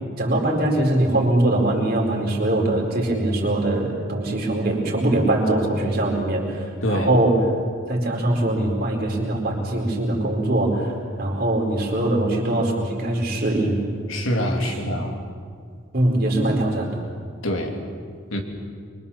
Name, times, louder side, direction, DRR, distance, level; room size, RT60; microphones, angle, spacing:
voice 1, 0.2-7.4 7.9-13.8 14.6-14.7 15.9-16.9, right 1 dB, 50° right, 0 dB, 4.5 m, -22 dB
voice 2, 6.8-7.1 14.1-15.2 17.4-17.8 18.3-18.4, left 1 dB, 80° left, 2 dB, 3.0 m, -25 dB
25.0 x 23.5 x 7.2 m, 2.1 s
head